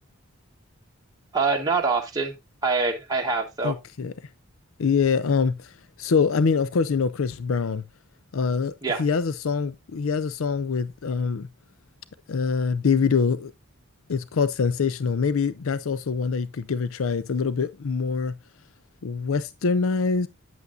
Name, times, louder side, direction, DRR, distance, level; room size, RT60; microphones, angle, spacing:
voice 1, 1.3-2.3 2.6-3.7 8.8-9.0, right 4 dB, 20° right, 1.2 m, -24 dB
voice 2, 3.6-4.1 4.8-5.7 6.0-7.8 8.3-8.7 9.0-11.5 12.3-13.5 14.1-18.3 19.0-20.3, left 5 dB, 70° left, 0.5 m, -24 dB
9.4 x 8.2 x 2.5 m
head